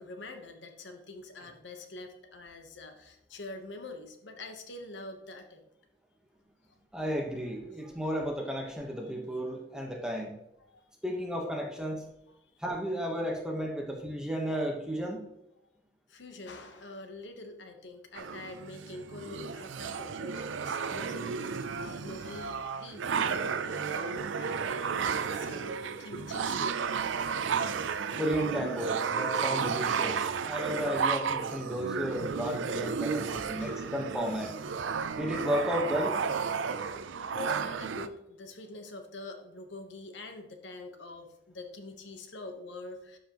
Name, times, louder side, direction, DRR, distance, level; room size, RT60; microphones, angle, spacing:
voice 1, 0.0-5.6 10.6-10.8 16.1-25.7 26.0-26.8 33.6-33.9 37.2-43.2, left 2 dB, 70° left, 5 dB, 1.1 m, -45 dB
voice 2, 6.9-10.3 11.0-12.0 12.6-15.2 28.1-34.5 35.2-36.1, equal, 5° right, 0 dB, 1.1 m, -33 dB
sound 1, 18.1-38.1, right 6 dB, 85° right, 0.5 m, -33 dB
12.0 x 5.4 x 3.0 m, 0.81 s
head